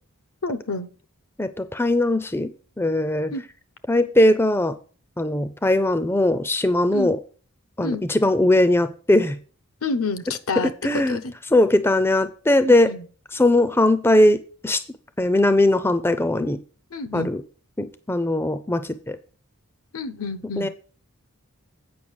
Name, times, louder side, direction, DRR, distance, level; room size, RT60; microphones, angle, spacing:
voice 1, 0.4-0.9 3.3-3.4 6.9-7.1 7.8-8.0 9.8-11.3 12.6-13.1 16.9-17.3 19.9-20.7, left 3 dB, 80° left, 0.9 m, -29 dB
voice 2, 1.4-2.5 2.8-3.3 3.9-4.8 5.2-7.2 7.8-9.4 10.8-11.2 11.5-12.9 13.3-14.8 15.2-16.6 17.1-17.4 17.8-19.2 20.6-20.7, left 1 dB, 10° left, 0.5 m, -20 dB
8.6 x 5.7 x 6.2 m
head